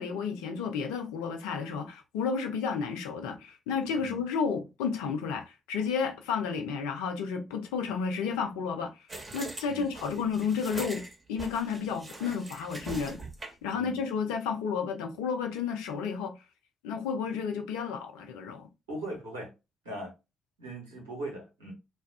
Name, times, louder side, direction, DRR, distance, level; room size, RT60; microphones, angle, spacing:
voice 1, 0.0-8.9 9.3-13.2 13.6-16.3 16.8-18.7, left 6 dB, 75° left, 0.5 m, -32 dB
sound 1, 9.1-13.7, right 2 dB, 30° right, 1.3 m, -42 dB
voice 2, 18.9-19.5 19.8-20.1 20.6-21.7, right 1 dB, 85° right, 1.0 m, -39 dB
2.4 x 2.3 x 3.6 m
hypercardioid pair, 45°, 0 cm